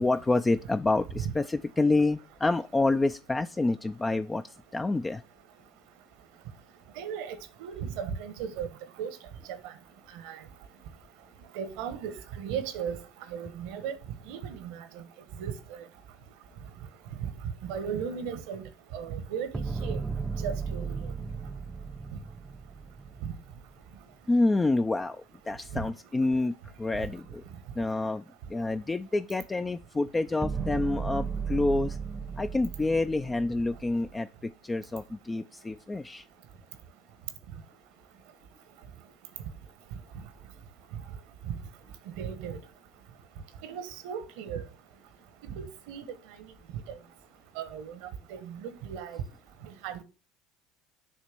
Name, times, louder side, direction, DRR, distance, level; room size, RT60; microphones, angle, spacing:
voice 1, 0.0-4.4 4.7-5.2 24.3-25.2 25.5-27.4 27.8-28.2 28.5-32.0 32.4-36.2, left 2 dB, 20° left, 0.4 m, -28 dB
voice 2, 7.0-8.7 9.0-9.1 9.6-9.7 10.1-10.4 11.5-13.0 13.3-13.9 14.3-15.0 15.4-15.8 17.2-17.3 17.6-18.6 18.9-20.0 20.4-21.0 25.7-25.8 41.5-41.6 42.2-42.6 43.6-44.6 45.6-46.1 46.9-47.0 47.6-48.0 48.3-49.2 49.8-50.0, right 7 dB, 75° right, 1.0 m, -36 dB
sound 1, 19.5-23.8 30.4-34.2, right 5 dB, 10° right, 0.8 m, -35 dB
7.2 x 2.9 x 6.0 m
hypercardioid pair, 75°, 0 cm